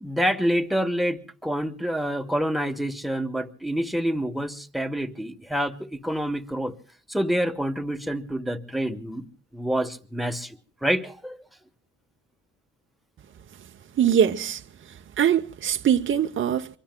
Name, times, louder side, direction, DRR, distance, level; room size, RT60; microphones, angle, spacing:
voice 1, 0.0-6.8 7.1-9.3 9.5-11.4, equal, ahead, 1.1 m, -27 dB
voice 2, 14.0-14.6 15.2-16.8, right 9 dB, 40° right, 0.7 m, -22 dB
27.0 x 23.5 x 2.2 m
cardioid pair, 90°, 30 cm